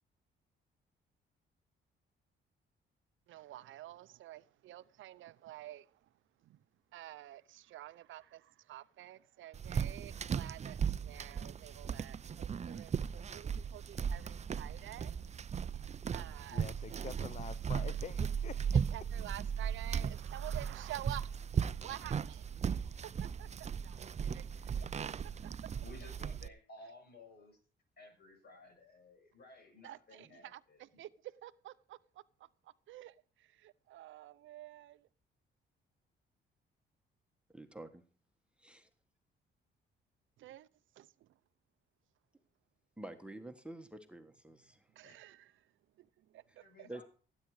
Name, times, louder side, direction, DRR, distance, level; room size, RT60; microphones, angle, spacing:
voice 1, 3.3-6.0 6.4-6.6 6.9-15.3 16.1-16.7 18.7-21.3 21.8-22.5 23.0-24.9 25.2-25.3 29.8-35.1 40.4-40.7 41.0-41.3 44.9-45.7 46.0-46.9, right 14 dB, 75° right, 0.7 m, -50 dB
sound 1, 9.5-26.5, right 7 dB, 35° right, 0.6 m, -37 dB
voice 2, 16.5-18.6, left 6 dB, 35° left, 0.6 m, -46 dB
voice 3, 25.8-27.6 28.0-31.0 45.0-45.2 46.6-47.0, left 2 dB, 55° left, 6.5 m, -56 dB
voice 4, 37.5-38.0 38.6-38.9 42.3-42.4 43.0-44.9 46.5-46.6 46.9-47.0, right 1 dB, 5° right, 1.5 m, -48 dB
16.5 x 9.3 x 4.9 m
cardioid pair, 90°, 20 cm